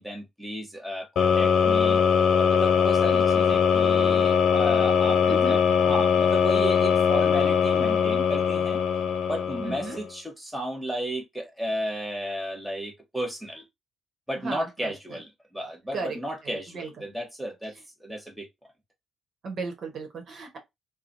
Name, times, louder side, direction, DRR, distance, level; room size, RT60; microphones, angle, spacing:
voice 1, 0.0-2.0 2.4-8.8 9.3-13.6 14.3-17.7 18.0-18.5, equal, ahead, 1.0 m, -33 dB
sound 1, 1.2-10.1, left 7 dB, 70° left, 0.6 m, -21 dB
voice 2, 5.3-5.6 9.6-10.0 14.4-15.2 15.9-16.2 16.7-16.9 19.4-20.6, right 4 dB, 60° right, 1.1 m, -35 dB
3.0 x 2.2 x 2.6 m
cardioid pair, 90°, 0 cm